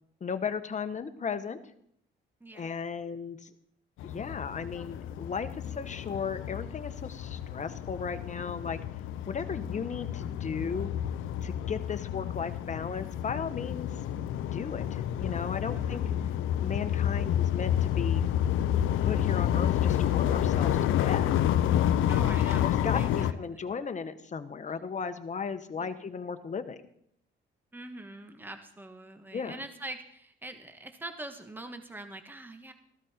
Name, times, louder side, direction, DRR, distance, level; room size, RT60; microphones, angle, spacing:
voice 1, 0.2-1.6 2.5-3.5 4.0-8.8 9.3-10.9 11.4-13.9 14.5-16.0 16.6-18.2 19.0-21.3 22.6-26.8 29.3-29.6, left 6 dB, 35° left, 10 dB, 1.3 m, -36 dB
sound 1, 4.0-23.3, left 11 dB, 85° left, 0.7 m, -29 dB
voice 2, 22.1-23.7 25.8-26.0 27.7-32.7, right 2 dB, 10° right, 7 dB, 1.5 m, -44 dB
14.5 x 13.0 x 4.4 m, 0.70 s
cardioid pair, 90°, 20 cm